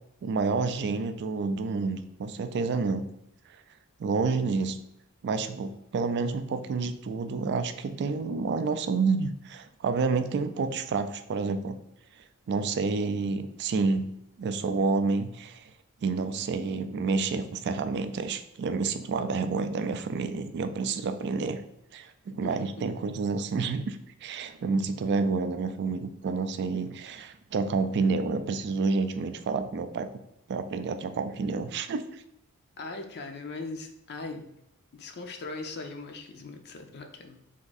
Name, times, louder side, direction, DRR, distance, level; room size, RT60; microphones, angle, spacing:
voice 1, 0.2-3.0 4.0-4.8 5.2-11.8 12.5-14.1 14.4-15.6 16.0-21.6 21.9-30.1 30.5-32.0, right 4 dB, 50° right, 10 dB, 0.3 m, -29 dB
voice 2, 32.8-34.5 34.9-37.4, left 3 dB, 50° left, 4 dB, 0.5 m, -39 dB
3.6 x 2.6 x 3.9 m, 0.80 s
head